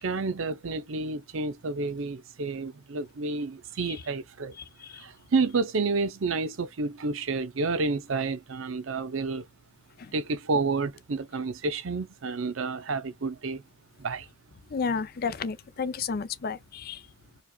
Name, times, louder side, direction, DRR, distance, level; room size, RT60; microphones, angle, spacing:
voice 1, 0.0-4.6 4.9-9.5 10.1-13.6 14.0-14.3, right 4 dB, 80° right, 0.6 m, -30 dB
voice 2, 14.7-17.0, left 5 dB, 50° left, 0.5 m, -31 dB
4.9 x 2.3 x 2.4 m
head